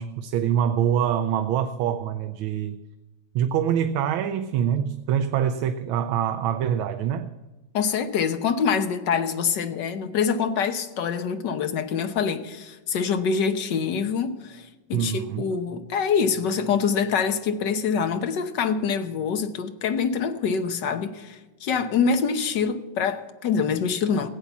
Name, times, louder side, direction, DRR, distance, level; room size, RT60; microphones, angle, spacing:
voice 1, 0.0-2.8 3.3-7.3 14.9-15.4, right 9 dB, 85° right, 1.5 m, -25 dB
voice 2, 7.7-24.3, left 6 dB, 65° left, 1.5 m, -25 dB
16.0 x 8.5 x 7.2 m
omnidirectional pair, 2.2 m